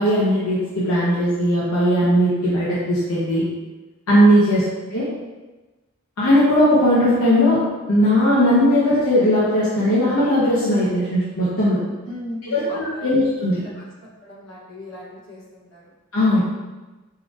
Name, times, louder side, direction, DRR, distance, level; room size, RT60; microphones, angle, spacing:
voice 1, 0.0-3.4 4.1-4.6 4.9-5.1 6.2-7.6 7.9-11.8 12.5-13.6 16.1-16.4, equal, 85° left, -8 dB, 1.0 m, -18 dB
voice 2, 12.0-13.1 13.6-13.7 14.2-15.9 16.3-16.4, left 1 dB, 65° left, -7 dB, 1.5 m, -37 dB
4.5 x 3.9 x 2.9 m, 1.2 s
head